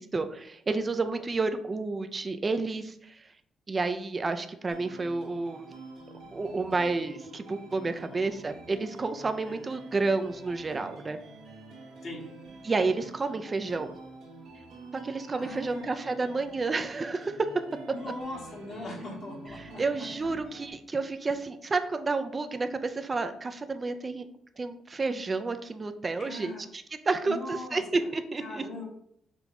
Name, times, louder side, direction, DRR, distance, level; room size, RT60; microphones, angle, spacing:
voice 1, 0.0-3.2 3.7-5.7 6.3-11.2 12.6-14.0 15.0-17.5 19.6-24.3 24.6-28.8, right 3 dB, 30° right, 9 dB, 0.4 m, -30 dB
sound 1, 4.7-20.7, right 3 dB, 85° right, 1.2 m, -47 dB
voice 2, 15.3-15.8 17.9-19.8 26.2-26.6 27.3-28.1 28.4-28.9, left 2 dB, 55° left, -3 dB, 1.5 m, -40 dB
5.2 x 2.4 x 3.1 m, 0.69 s
cardioid pair, 90°, 0 cm